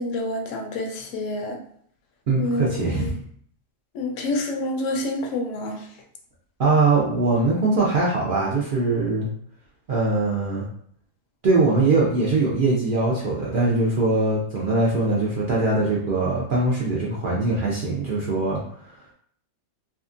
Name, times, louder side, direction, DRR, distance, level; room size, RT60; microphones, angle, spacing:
voice 1, 0.0-1.6 2.4-3.1 3.9-5.9, left 2 dB, 75° left, 2 dB, 0.9 m, -28 dB
voice 2, 2.3-3.1 6.6-9.3 9.9-10.6 11.4-18.6, right 3 dB, 60° right, -5 dB, 0.5 m, -22 dB
2.7 x 2.3 x 2.5 m, 0.63 s
omnidirectional pair, 1.4 m